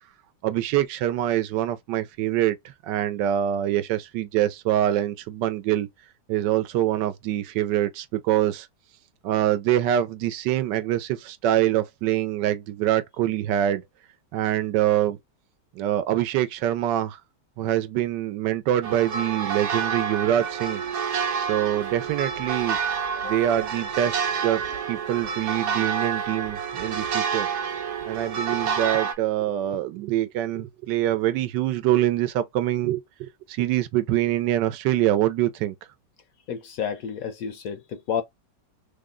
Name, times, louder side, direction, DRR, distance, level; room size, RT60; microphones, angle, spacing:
voice 1, 0.4-5.9 6.3-8.7 9.2-13.8 14.3-15.2 15.8-17.2 17.6-20.8 21.4-22.8 23.2-24.2 24.4-24.6 24.9-27.5 28.1-35.7, right 12 dB, 85° right, 1.2 m, -24 dB
sound 1, 18.8-29.1, right 6 dB, 55° right, 1.0 m, -28 dB
voice 2, 36.5-38.2, left 7 dB, 70° left, 0.9 m, -30 dB
3.5 x 2.1 x 3.6 m
omnidirectional pair, 1.8 m